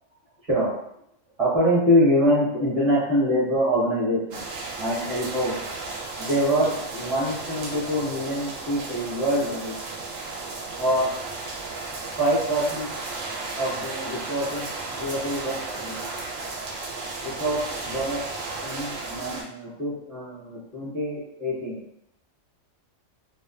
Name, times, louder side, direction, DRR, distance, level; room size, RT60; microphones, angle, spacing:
voice 1, 1.4-4.5 4.8-5.6 6.2-9.8 10.8-11.1 12.2-12.9 13.5-16.0 17.2-18.2 18.6-21.8, equal, 30° right, -8 dB, 0.9 m, -25 dB
sound 1, 4.3-19.4, right 3 dB, 75° right, 1.0 m, -34 dB
2.4 x 2.3 x 2.3 m, 0.75 s
omnidirectional pair, 1.4 m